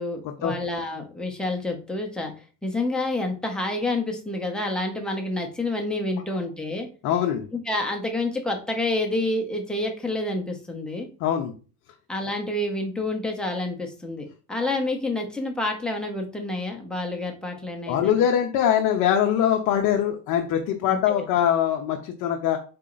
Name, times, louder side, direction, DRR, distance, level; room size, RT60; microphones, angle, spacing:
voice 1, 0.0-2.3 2.6-6.9 7.5-11.1 12.1-18.2 20.9-21.3, left 2 dB, ahead, 1 dB, 0.7 m, -28 dB
voice 2, 7.0-7.5 11.2-11.5 17.9-22.6, left 9 dB, 45° left, 3 dB, 0.7 m, -22 dB
4.1 x 2.8 x 3.8 m, 0.37 s
supercardioid pair, 130°, 42 cm